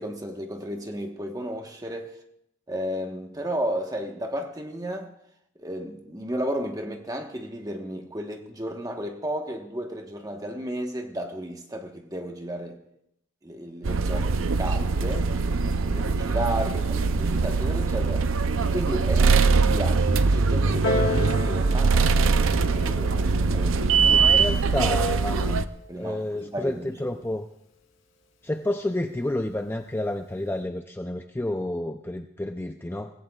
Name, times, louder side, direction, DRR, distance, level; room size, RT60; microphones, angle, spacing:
voice 1, 0.0-2.2 2.7-5.1 5.5-12.8 13.4-15.3 15.8-18.3 18.6-24.4 25.9-27.3, equal, 20° right, 1.2 m, -33 dB
sound 1, 13.8-25.6, right 4 dB, 80° right, 0.6 m, -22 dB
Piano, 20.8-26.0 26.9-27.0, left 3 dB, 80° left, 4.4 m, -34 dB
voice 2, 24.1-25.6 26.0-27.5 28.4-33.1, left 1 dB, 10° left, 0.4 m, -30 dB
25.5 x 15.5 x 2.4 m
head